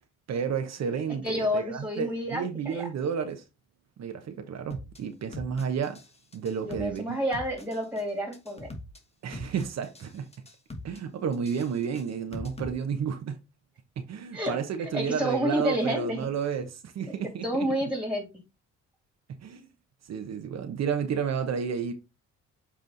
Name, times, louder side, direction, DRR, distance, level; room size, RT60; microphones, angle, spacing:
voice 1, 0.3-3.4 4.0-6.0 6.3-7.2 9.2-10.3 10.8-13.4 14.0-17.7 19.3-19.6 20.1-21.9, right 7 dB, 60° right, 1.0 m, -31 dB
voice 2, 1.2-2.9 6.6-8.7 14.3-14.5 14.8-16.3 17.4-18.2, equal, 5° right, 2.8 m, -29 dB
sound 1, 4.7-5.0 5.3-6.1 6.3-7.0 7.3-8.0 8.3-9.0 9.3-10.1 10.3-11.0 11.3-12.7, left 2 dB, 20° left, 1.3 m, -41 dB
7.7 x 3.3 x 3.9 m
cardioid pair, 90°, 30 cm